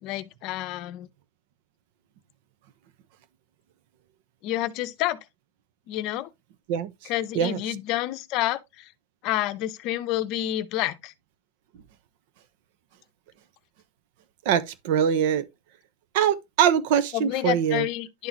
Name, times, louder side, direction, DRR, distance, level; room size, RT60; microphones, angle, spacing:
voice 1, 0.0-1.1 4.4-5.2 5.9-6.3 7.1-8.8 9.2-11.1 17.1-18.3, left 14 dB, 45° left, 0.7 m, -29 dB
voice 2, 6.7-7.1 7.3-7.6 14.4-15.4 16.1-17.9, right 8 dB, 60° right, 1.0 m, -23 dB
11.0 x 3.9 x 3.0 m
supercardioid pair, 135°, 0 cm